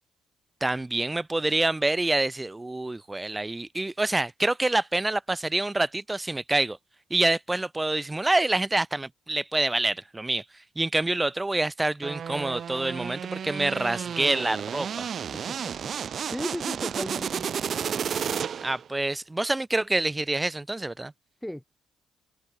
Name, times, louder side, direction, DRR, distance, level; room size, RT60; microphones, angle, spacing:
voice 1, 0.6-6.8 7.1-10.4 10.8-15.1 18.6-21.1, right 2 dB, 15° right, 4.3 m, -27 dB
sound 1, 12.0-18.9, right 8 dB, 55° right, 6.2 m, -32 dB
voice 2, 16.0-17.4 21.4-21.6, equal, 5° left, 7.8 m, -35 dB
open air
cardioid pair, 90°, 0 cm